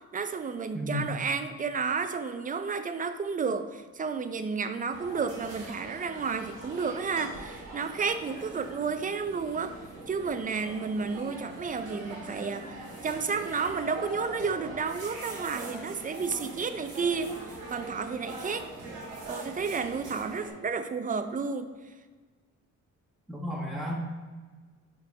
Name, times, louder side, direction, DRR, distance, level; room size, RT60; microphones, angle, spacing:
voice 1, 0.1-9.7 10.1-12.7 13.0-17.3 17.7-18.7 19.3-21.7, right 5 dB, 25° right, 9 dB, 0.5 m, -31 dB
voice 2, 0.7-1.1 23.3-24.0, left 1 dB, ahead, -4 dB, 1.4 m, -33 dB
sound 1, 4.9-20.5, right 2 dB, 90° right, 1.6 m, -42 dB
5.8 x 3.9 x 4.7 m, 1.4 s
cardioid pair, 90°, 30 cm